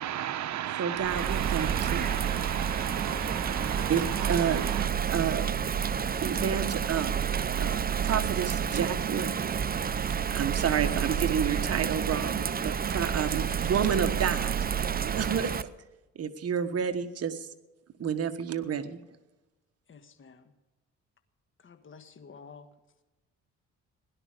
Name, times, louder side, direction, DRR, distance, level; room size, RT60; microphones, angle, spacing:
voice 1, 0.0-4.9, right 11 dB, 70° right, 1.0 m, -34 dB
voice 2, 0.8-2.1 3.9-4.6 5.1-5.5 6.2-7.1 7.6-9.4 10.0-14.6 14.9-15.7 16.1-17.5 18.0-19.0, right 7 dB, 55° right, 1.4 m, -30 dB
Bird vocalization bird call bird song / Rain, 1.0-15.6, right 7 dB, 30° right, 0.7 m, -29 dB
voice 3, 19.9-20.5 21.6-22.7, left 5 dB, 40° left, 1.6 m, -51 dB
17.5 x 11.5 x 5.1 m
cardioid pair, 90°, 30 cm